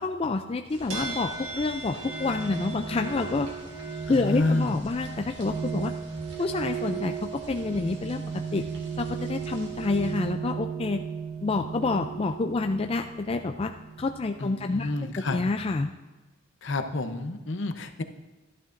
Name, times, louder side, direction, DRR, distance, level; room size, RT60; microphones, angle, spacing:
voice 1, 0.0-3.5 4.1-5.9 6.4-8.2 8.5-8.7 9.0-11.0 11.4-13.7 14.0-15.9, left 3 dB, 30° left, 5 dB, 0.3 m, -28 dB
sound 1, 0.7-10.3, right 1 dB, 60° right, 2.3 m, -47 dB
sound 2, 0.9-14.4, right 6 dB, 80° right, 1.7 m, -36 dB
voice 2, 4.1-4.8 14.4-15.4 16.6-18.0, left 2 dB, 60° left, 8 dB, 0.8 m, -29 dB
13.5 x 11.0 x 2.6 m, 1.2 s
head